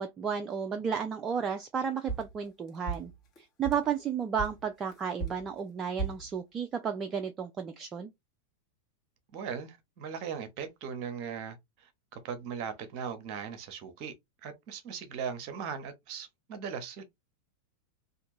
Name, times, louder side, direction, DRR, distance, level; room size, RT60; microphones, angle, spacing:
voice 1, 0.0-3.1 3.4-8.1, right 7 dB, 25° right, 0.4 m, -33 dB
sound 1, 2.1-3.9 4.4-6.3, right 4 dB, 30° left, 1.4 m, -37 dB
voice 2, 9.3-14.1 14.4-17.0, right 7 dB, 40° right, 0.9 m, -39 dB
3.4 x 2.6 x 3.0 m
figure-of-eight pair, 90°, 0 cm